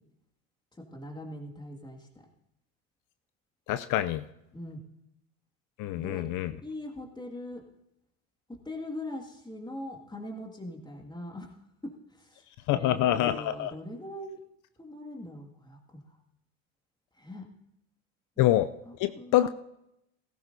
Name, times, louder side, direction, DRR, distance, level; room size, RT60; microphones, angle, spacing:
voice 1, 0.9-2.1 4.5-4.8 5.9-6.3 6.6-7.7 8.5-11.6 12.1-12.4 12.7-14.4 14.8-16.2 17.2-17.5 18.4-18.5 18.8-19.4, left 1 dB, 10° left, 2 dB, 2.1 m, -41 dB
voice 2, 3.7-4.2 5.8-6.5 12.7-13.7 18.4-18.7 19.0-19.5, left 13 dB, 55° left, 12 dB, 0.6 m, -26 dB
16.5 x 14.5 x 2.7 m, 0.84 s
supercardioid pair, 90°, 37 cm